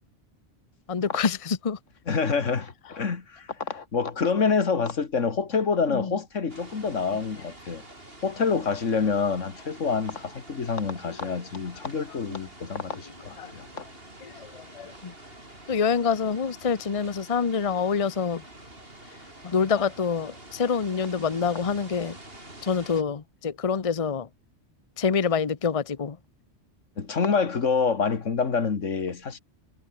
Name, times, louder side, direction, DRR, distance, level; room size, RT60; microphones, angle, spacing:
voice 1, 0.9-1.8 5.9-6.2 11.2-11.4 12.3-12.5 13.4-13.5 14.2-15.1 15.7-18.4 19.4-22.2 22.6-24.3 25.0-26.2, left 6 dB, 30° left, 0.9 m, -26 dB
voice 2, 2.1-7.8 8.2-13.7 27.0-29.4, left 5 dB, 85° left, 2.2 m, -27 dB
sound 1, 6.5-23.0, right 1 dB, 50° right, 6.5 m, -47 dB
omnidirectional pair, 1.2 m